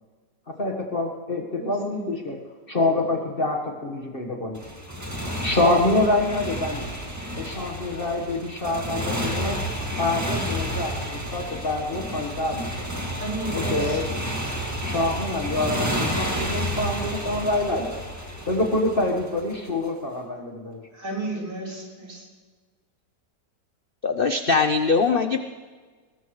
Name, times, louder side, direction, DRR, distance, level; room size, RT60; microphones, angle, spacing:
voice 1, 0.5-2.4 2.7-4.6 5.4-6.9 7.4-9.6 10.0-12.9 13.5-14.1 14.8-17.9 18.5-20.8, left 2 dB, 35° left, 2 dB, 1.6 m, -26 dB
voice 2, 1.6-2.0 13.2-14.0 20.9-22.2, right 2 dB, 65° right, -2 dB, 4.9 m, -33 dB
Motorcycle, 4.5-19.7, equal, 10° right, 1.8 m, -30 dB
voice 3, 24.0-25.5, left 4 dB, 55° left, 8 dB, 0.6 m, -21 dB
21.5 x 19.0 x 3.2 m, 1.4 s
omnidirectional pair, 1.8 m